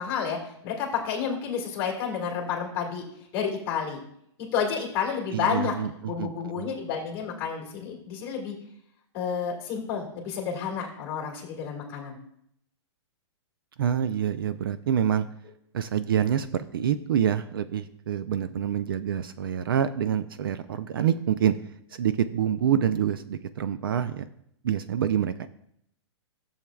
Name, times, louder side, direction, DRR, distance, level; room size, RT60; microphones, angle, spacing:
voice 1, 0.0-3.0 3.3-4.0 4.4-5.7 6.1-8.5 9.1-12.2, left 7 dB, 20° left, 0 dB, 1.8 m, -30 dB
voice 2, 5.3-6.7 13.8-15.3 15.7-21.6 21.9-24.2 24.6-25.5, right 9 dB, 50° right, 12 dB, 0.4 m, -26 dB
13.5 x 7.2 x 2.3 m, 0.73 s
hypercardioid pair, 175°, 15 cm